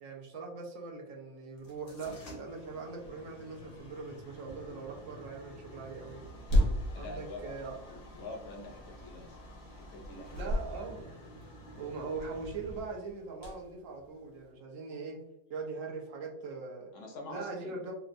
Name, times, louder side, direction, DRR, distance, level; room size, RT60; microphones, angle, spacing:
voice 1, 0.0-6.2 7.0-7.8 10.3-11.2 11.8-15.2 15.5-16.9 17.3-17.9, right 4 dB, 70° right, 0 dB, 1.0 m, -41 dB
sound 1, 1.6-14.5, equal, 85° left, 1.4 m, -38 dB
voice 2, 6.9-7.6 7.9-9.4 9.7-11.1 16.9-17.8, left 2 dB, 70° left, 1 dB, 0.9 m, -46 dB
4.3 x 2.0 x 2.4 m, 0.88 s
omnidirectional pair, 1.5 m